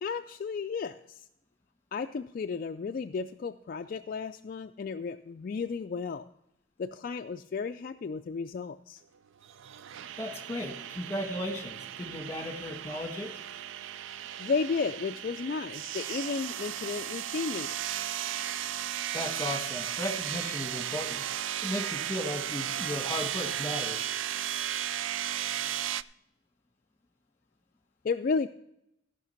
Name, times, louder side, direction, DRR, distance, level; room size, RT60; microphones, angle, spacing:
voice 1, 0.0-1.2 1.9-6.3 6.8-9.0 14.4-17.7 28.0-28.5, left 5 dB, 45° left, 7 dB, 0.3 m, -33 dB
sound 1, 9.4-26.0, right 11 dB, 75° right, 0.3 m, -35 dB
voice 2, 10.2-13.3 19.1-21.2 21.6-24.1, left 1 dB, 15° left, 3 dB, 1.6 m, -36 dB
14.5 x 5.9 x 5.8 m, 0.82 s
head